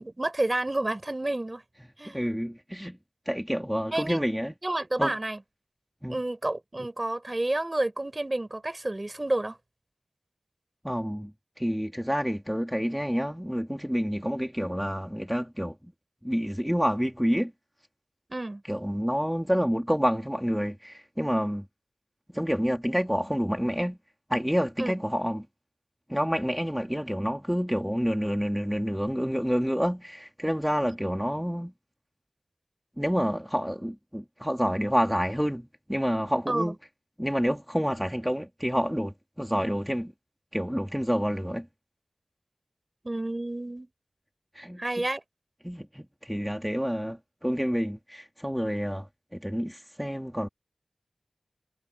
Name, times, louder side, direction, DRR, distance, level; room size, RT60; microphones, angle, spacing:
voice 1, 0.0-1.6 2.0-2.2 3.9-4.2 4.6-5.4 6.1-9.6 18.3-18.6 24.8-24.9 36.5-36.7 43.0-43.9 44.8-45.2, right 1 dB, 35° right, 4.9 m, -30 dB
voice 2, 2.1-3.0 3.3-4.5 5.0-5.1 6.0-6.2 10.8-15.8 16.2-17.5 18.7-21.7 22.3-24.0 24.3-25.5 26.1-31.7 33.0-36.8 37.2-40.1 40.5-41.7 44.5-44.8 45.6-49.1 49.3-50.5, equal, 5° right, 2.3 m, -28 dB
wide cardioid pair, 45°, 0 cm